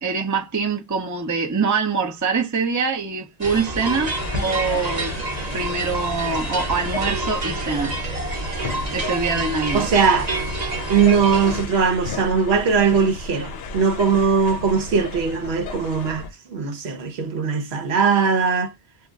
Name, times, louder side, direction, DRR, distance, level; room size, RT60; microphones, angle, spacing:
voice 1, 0.0-4.1 4.4-5.2 5.5-7.9 8.9-9.9, right 5 dB, 25° right, 0.5 m, -24 dB
sound 1, 3.4-11.7, right 2 dB, 40° right, 0.9 m, -28 dB
sound 2, 3.9-16.3, left 3 dB, 70° left, 0.8 m, -34 dB
voice 2, 9.7-10.3 10.9-18.7, right 5 dB, 70° right, 1.0 m, -20 dB
2.4 x 2.2 x 3.5 m
omnidirectional pair, 1.1 m